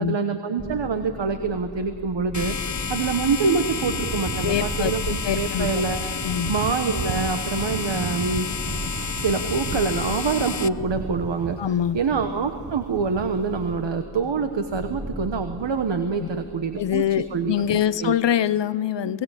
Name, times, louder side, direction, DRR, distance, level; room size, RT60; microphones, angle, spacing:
voice 1, 0.0-2.6 2.9-6.1 6.5-8.5 9.2-11.6 11.9-17.0 17.3-17.6 18.0-18.1, right 5 dB, 80° right, 7 dB, 1.2 m, -25 dB
sound 1, 0.6-18.3, equal, 20° right, 1.5 m, -40 dB
sound 2, 2.3-10.7, left 6 dB, 40° left, 0.9 m, -30 dB
sound 3, 3.7-13.9, right 8 dB, 45° right, 0.6 m, -37 dB
voice 2, 4.4-4.9 5.2-5.8 6.2-6.5 11.6-12.0 16.8-19.2, left 10 dB, 75° left, 17 dB, 0.7 m, -24 dB
28.0 x 18.0 x 8.2 m, 2.6 s
cardioid pair, 40°, 43 cm